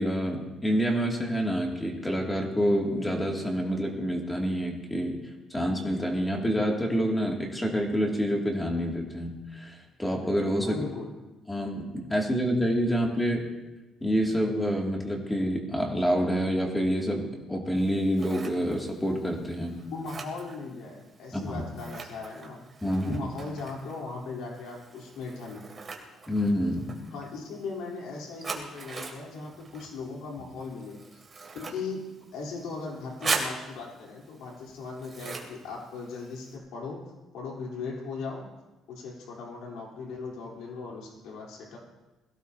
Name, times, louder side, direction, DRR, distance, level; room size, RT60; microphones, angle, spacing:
voice 1, 0.0-5.2 5.5-10.8 11.5-13.4 14.0-19.8 21.3-21.6 22.8-23.3 26.3-26.9, equal, 10° left, -1 dB, 2.4 m, -27 dB
voice 2, 10.7-11.1 19.9-22.6 23.0-25.6 27.1-31.2 31.5-32.0 32.3-37.0 37.3-38.5 38.9-41.8, left 4 dB, 85° left, -2 dB, 3.6 m, -38 dB
Scissors, 17.8-36.6, right 4 dB, 25° right, 2.4 m, -41 dB
22.0 x 16.5 x 2.8 m, 1.1 s
cardioid pair, 155°, 0 cm